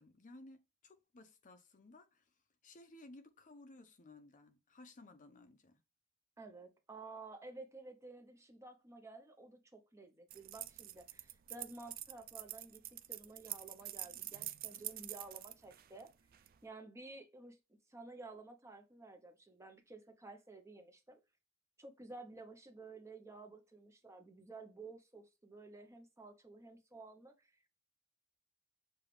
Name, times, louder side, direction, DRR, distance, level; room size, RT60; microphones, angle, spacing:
voice 1, 0.0-2.3 2.6-5.8, left 2 dB, 40° left, 0.6 m, -58 dB
voice 2, 6.4-12.8 13.1-16.1 16.6-17.6 17.9-21.2 21.8-27.7, right 3 dB, 15° right, 0.7 m, -53 dB
sound 1, 10.3-16.5, right 14 dB, 45° right, 0.3 m, -46 dB
6.8 x 2.4 x 3.2 m
head